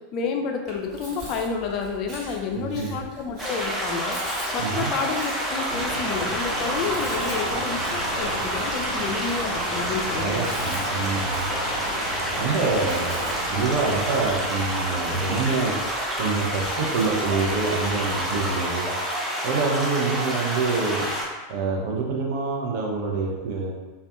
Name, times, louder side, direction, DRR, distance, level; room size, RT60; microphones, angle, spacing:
voice 1, 0.1-4.2 4.5-10.4, left 5 dB, 45° left, 3 dB, 0.3 m, -30 dB
Chewing mastication, 0.7-18.7, right 1 dB, 35° right, 1.1 m, -44 dB
voice 2, 2.5-2.9 4.6-4.9 10.1-11.5 12.4-13.1 13.5-15.8 16.2-18.9 19.4-21.1 21.5-23.7, right 4 dB, 55° right, -1 dB, 0.5 m, -26 dB
sound 1, 3.4-21.2, right 1 dB, 5° right, 0.6 m, -28 dB
sound 2, 5.7-14.2, right 1 dB, 80° right, 0.9 m, -32 dB
2.5 x 2.2 x 2.4 m, 1.2 s
figure-of-eight pair, 85°, 0 cm